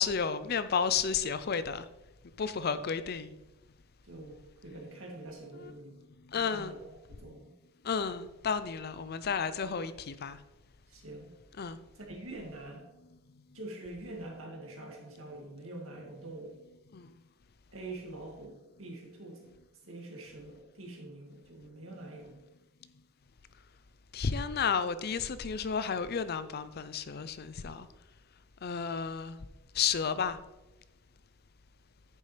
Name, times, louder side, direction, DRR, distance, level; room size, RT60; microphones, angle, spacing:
voice 1, 0.0-1.9 2.4-3.3 5.6-5.7 6.3-6.7 7.8-10.4 11.6-11.8 16.9-17.1 24.1-27.9 28.6-29.4 29.7-30.4, left 6 dB, 50° left, 13 dB, 0.5 m, -32 dB
voice 2, 4.0-6.0 6.3-6.8 7.2-7.6 10.9-11.3 11.9-12.9 13.5-16.6 17.7-19.5 19.8-22.4, right 2 dB, 80° right, 0 dB, 2.1 m, -45 dB
10.0 x 7.0 x 3.3 m, 0.99 s
head